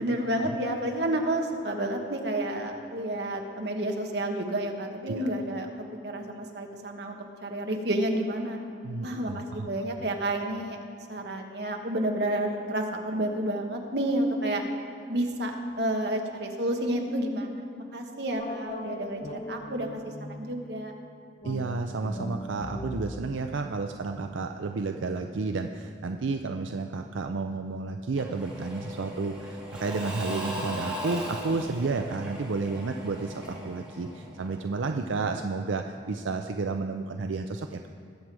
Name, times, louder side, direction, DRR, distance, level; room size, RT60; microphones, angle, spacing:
voice 1, 0.0-5.7 6.0-8.6 9.0-10.8 11.1-14.6 15.1-17.6 17.9-19.9 20.3-20.9, right 1 dB, 60° right, 2 dB, 1.4 m, -30 dB
voice 2, 8.8-9.7 21.4-37.9, right 3 dB, 80° right, 5 dB, 0.5 m, -31 dB
sound 1, 18.4-20.6 21.4-24.7, left 1 dB, 30° left, 0.6 m, -40 dB
Engine / Mechanisms / Drill, 28.2-34.8, equal, 5° right, 2.2 m, -38 dB
20.5 x 7.7 x 4.7 m, 2.4 s
head